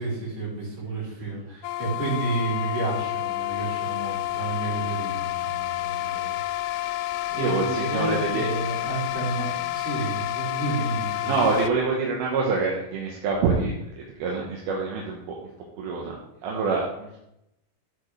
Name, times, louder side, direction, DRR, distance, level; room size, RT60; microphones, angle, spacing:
voice 1, 0.0-6.4 6.6-6.9 7.3-11.4, right 2 dB, 65° right, -7 dB, 5.8 m, -31 dB
sound 1, 1.6-11.7, left 16 dB, 85° left, 1.9 m, -29 dB
voice 2, 7.4-8.5 11.2-15.4 15.8-16.2 16.4-17.2, right 4 dB, 85° right, -2 dB, 3.2 m, -26 dB
12.5 x 8.2 x 3.3 m, 0.81 s
omnidirectional pair, 4.2 m